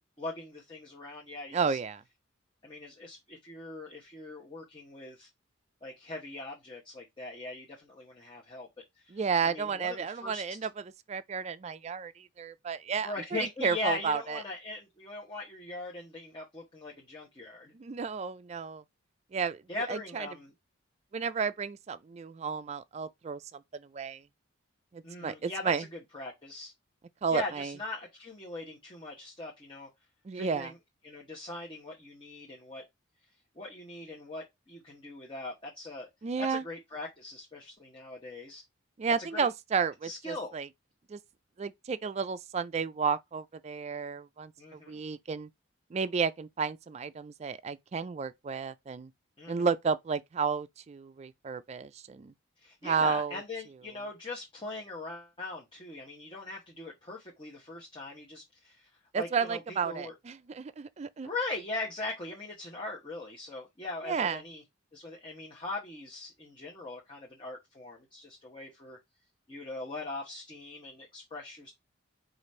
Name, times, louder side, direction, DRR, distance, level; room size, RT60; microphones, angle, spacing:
voice 1, 0.2-1.8 2.6-5.3 5.8-8.7 9.0-10.4 13.0-17.7 19.7-20.5 25.0-26.7 27.3-29.9 30.3-30.8 31.0-32.8 33.5-36.1 36.5-38.6 39.3-39.5 40.0-40.5 44.6-45.0 49.4-49.7 52.6-60.1 61.2-64.6 64.9-69.0 69.5-71.7, left 2 dB, 25° left, 1.0 m, -40 dB
voice 2, 1.5-2.0 9.1-10.7 11.1-14.4 17.7-18.8 19.3-19.6 19.9-20.3 21.1-24.2 24.9-25.8 27.2-27.7 30.2-30.7 36.2-36.6 39.0-40.7 41.1-41.2 41.6-45.5 45.9-49.1 49.5-52.3 52.8-53.4 59.1-61.3 64.1-64.4, right 5 dB, 35° right, 0.3 m, -32 dB
4.9 x 2.5 x 4.2 m
head